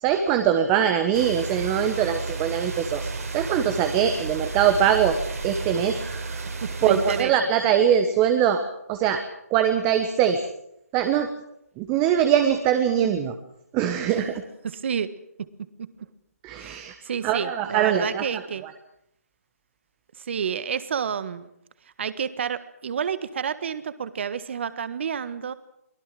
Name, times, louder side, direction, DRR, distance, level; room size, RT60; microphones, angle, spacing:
voice 1, 0.0-3.1 3.3-5.2 5.4-6.0 6.8-8.6 8.9-9.2 9.5-10.4 10.9-11.3 11.8-13.3 13.7-14.4 16.4-17.0 17.2-18.7, right 9 dB, 20° right, 8 dB, 1.2 m, -22 dB
sound 1, 1.1-7.2, right 3 dB, 65° right, 5.1 m, -32 dB
voice 2, 6.6-7.3 14.1-14.2 14.6-15.1 16.6-18.6 20.2-21.5 22.0-25.5, right 7 dB, 45° right, 14 dB, 1.5 m, -29 dB
24.0 x 17.5 x 7.7 m, 0.78 s
figure-of-eight pair, 155°, 9 cm